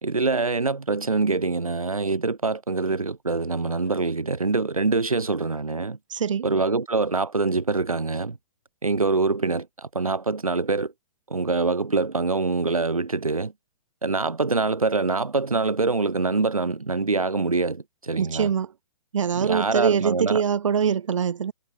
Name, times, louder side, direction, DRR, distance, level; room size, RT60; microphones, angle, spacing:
voice 1, 0.0-6.0 6.4-8.4 8.8-10.9 11.3-13.5 14.0-18.5 19.4-20.4, right 3 dB, 85° right, 2.7 m, -24 dB
voice 2, 6.1-6.5 18.2-18.7 19.1-21.5, right 7 dB, 65° right, 1.4 m, -23 dB
figure-of-eight pair, 125°, 18 cm